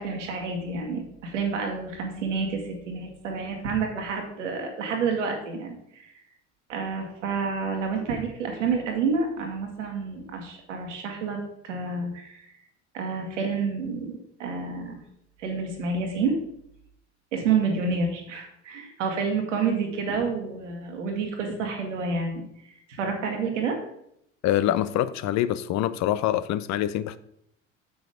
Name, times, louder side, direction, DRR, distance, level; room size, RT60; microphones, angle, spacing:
voice 1, 0.0-6.1 6.7-12.5 12.9-15.0 15.4-16.4 17.3-22.4 22.9-23.8, right 4 dB, 85° right, 1.7 m, -29 dB
voice 2, 24.4-27.2, left 12 dB, 50° left, 0.6 m, -25 dB
7.1 x 6.2 x 5.0 m
hypercardioid pair, 70°, 36 cm